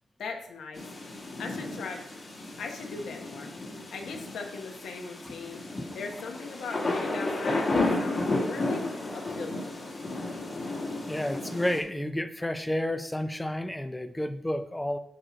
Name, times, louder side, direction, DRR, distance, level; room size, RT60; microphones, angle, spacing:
voice 1, 0.2-0.8 1.4-2.0 2.6-3.5 3.9-5.6 5.9-8.9 9.1-9.7, left 4 dB, 70° left, 3 dB, 1.1 m, -39 dB
sound 1, 0.7-11.8, left 2 dB, 30° left, 1.4 m, -33 dB
voice 2, 11.1-15.0, left 1 dB, 5° left, 9 dB, 0.4 m, -31 dB
7.7 x 3.1 x 5.1 m, 0.77 s
wide cardioid pair, 160°, 0 cm